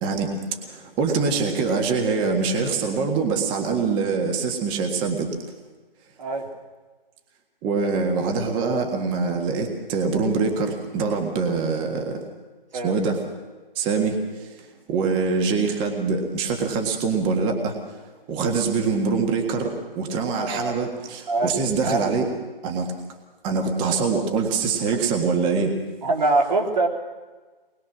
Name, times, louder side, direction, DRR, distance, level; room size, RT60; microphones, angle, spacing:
voice 1, 0.0-5.3 7.6-12.2 12.8-13.2 13.7-14.6 14.9-18.0 18.3-22.3 22.6-22.9 23.4-25.8, right 4 dB, 15° right, 3 dB, 1.7 m, -24 dB
voice 2, 12.7-13.1 20.4-20.7 21.3-22.2 26.0-26.9, right 2 dB, 50° right, 0 dB, 3.5 m, -24 dB
23.5 x 21.0 x 6.2 m, 1.3 s
figure-of-eight pair, 145°, 29 cm